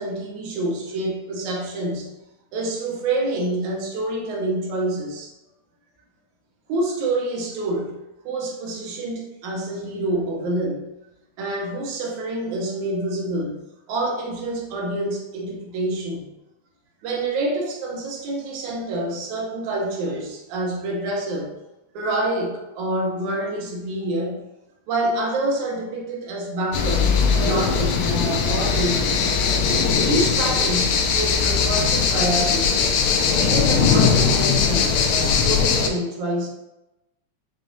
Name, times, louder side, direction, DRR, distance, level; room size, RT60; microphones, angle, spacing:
voice 1, 0.0-2.1 2.5-5.3 6.7-8.0 8.3-10.8 11.4-13.6 13.9-16.3 17.0-21.5 21.9-24.4 24.9-27.1 27.4-29.4 30.0-32.8 33.4-36.5, right 1 dB, 75° right, -2 dB, 2.2 m, -27 dB
sound 1, 26.7-35.9, left 5 dB, 80° left, 1.9 m, -20 dB
6.8 x 2.4 x 2.6 m, 0.96 s
omnidirectional pair, 3.6 m